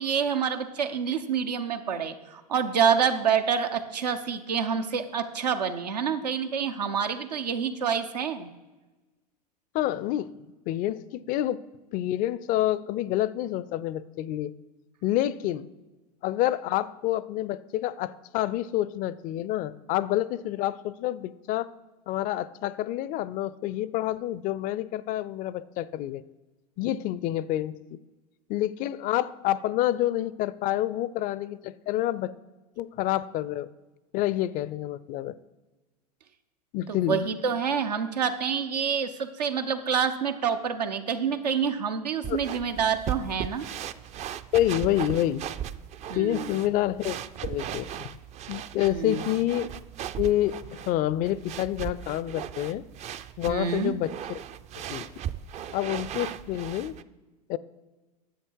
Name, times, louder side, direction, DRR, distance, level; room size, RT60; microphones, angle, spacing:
voice 1, 0.0-8.5 36.9-43.6 46.1-46.6 48.8-49.2 53.5-53.9, right 7 dB, 90° right, 7 dB, 0.8 m, -27 dB
voice 2, 9.7-10.3 10.7-11.6 11.9-14.5 15.0-15.7 16.2-21.7 22.1-26.2 26.8-28.0 28.5-32.3 32.8-33.7 34.1-35.4 36.7-37.2 42.3-42.4 44.5-45.4 46.1-47.2 47.4-48.1 48.5-49.7 50.2-52.8 53.4-54.4 54.9-55.1 55.7-57.0 57.5-57.6, left 13 dB, 45° left, 18 dB, 0.4 m, -28 dB
sound 1, 42.2-57.0, right 10 dB, 35° right, 0.4 m, -37 dB
10.0 x 7.4 x 4.6 m, 1.2 s
hypercardioid pair, 90°, 20 cm